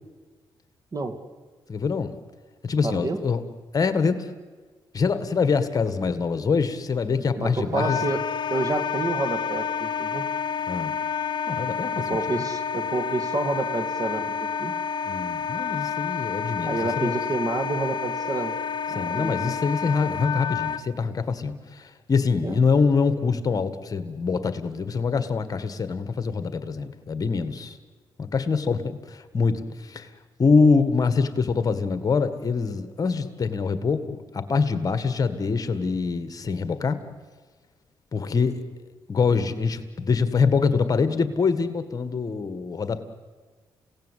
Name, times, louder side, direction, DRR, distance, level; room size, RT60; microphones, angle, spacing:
voice 1, 1.7-2.1 2.6-3.4 3.7-4.3 4.9-8.0 10.7-10.9 11.5-12.4 15.0-17.2 18.9-27.8 28.2-30.1 30.4-37.0 38.1-38.6 39.1-43.0, left 5 dB, 40° left, 11 dB, 1.8 m, -24 dB
voice 2, 2.8-3.2 7.3-8.2 8.5-10.3 12.0-14.7 16.7-18.6 18.9-19.5 22.4-22.6, right 2 dB, 40° right, 9 dB, 2.2 m, -29 dB
Wind instrument woodwind instrument, 7.7-20.8, left 7 dB, 60° left, 0.9 m, -29 dB
29.5 x 17.0 x 8.3 m, 1.4 s
cardioid pair, 80°, 9 cm